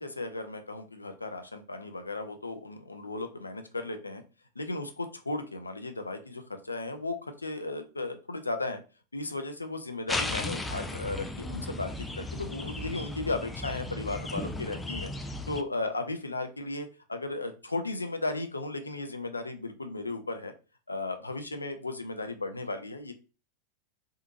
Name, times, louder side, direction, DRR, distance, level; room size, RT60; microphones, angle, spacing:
voice 1, 0.0-4.2 4.6-8.8 9.1-15.1 15.5-20.5 20.9-23.1, left 2 dB, 80° left, 7 dB, 0.5 m, -35 dB
sound 1, 10.1-15.6, left 2 dB, 10° left, 0.4 m, -35 dB
3.7 x 2.7 x 2.5 m, 0.34 s
figure-of-eight pair, 90°, 0 cm